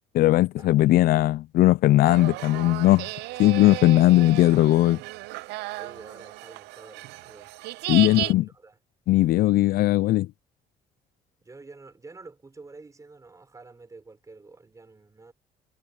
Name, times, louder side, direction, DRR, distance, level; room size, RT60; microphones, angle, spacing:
voice 1, 0.0-3.1 3.4-5.0 7.9-8.5 9.1-10.3, left 16 dB, 65° left, 0.4 m, -19 dB
voice 2, 0.6-1.2 5.8-7.5 7.9-8.8 11.4-15.3, right 3 dB, 20° right, 5.7 m, -48 dB
sound 1, 2.0-8.3, right 20 dB, 90° right, 0.5 m, -35 dB
cardioid pair, 110°, 17 cm